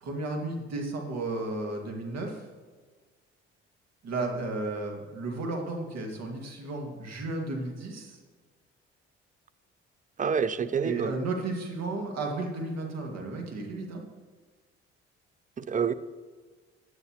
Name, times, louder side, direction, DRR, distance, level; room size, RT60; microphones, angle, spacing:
voice 1, 0.0-2.4 4.0-8.2 10.8-14.0, right 2 dB, 60° right, 2 dB, 2.0 m, -33 dB
voice 2, 10.2-11.1 15.6-15.9, right 6 dB, 25° right, 15 dB, 0.6 m, -27 dB
10.5 x 9.5 x 3.0 m, 1.4 s
hypercardioid pair, 55°, 30 cm